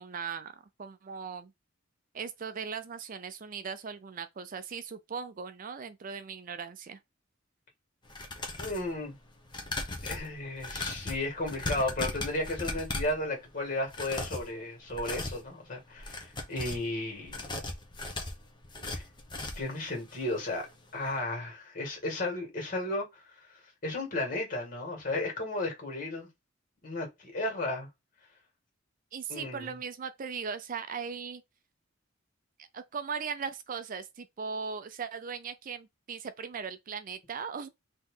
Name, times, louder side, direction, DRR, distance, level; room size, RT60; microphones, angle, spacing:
voice 1, 0.0-1.5 2.1-7.0 29.1-31.4 32.6-37.7, right 6 dB, 45° right, 0.4 m, -38 dB
sound 1, 8.0-8.9 9.5-13.2 13.8-14.5 14.9-15.4 15.9-16.9 17.3-19.7 20.1-20.2 20.6-20.7, left 2 dB, 25° left, 1.0 m, -37 dB
voice 2, 8.6-9.2 10.0-17.4 18.9-19.0 19.6-20.7 20.9-23.5 23.8-26.3 26.8-27.9 29.3-29.7, left 2 dB, 45° left, 2.2 m, -34 dB
4.2 x 2.9 x 3.8 m
head